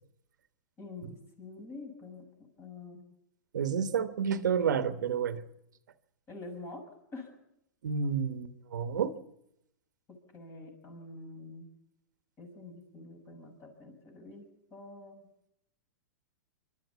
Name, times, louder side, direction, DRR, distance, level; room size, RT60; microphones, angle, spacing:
voice 1, 0.8-3.0 6.3-6.8 7.1-7.3 10.1-11.7 12.4-14.4 14.7-15.2, left 3 dB, 25° left, 4 dB, 6.4 m, -46 dB
voice 2, 3.5-5.4 7.8-9.1, right 7 dB, 80° right, 10 dB, 1.3 m, -30 dB
27.0 x 12.5 x 8.3 m, 0.84 s
hypercardioid pair, 120°, 10 cm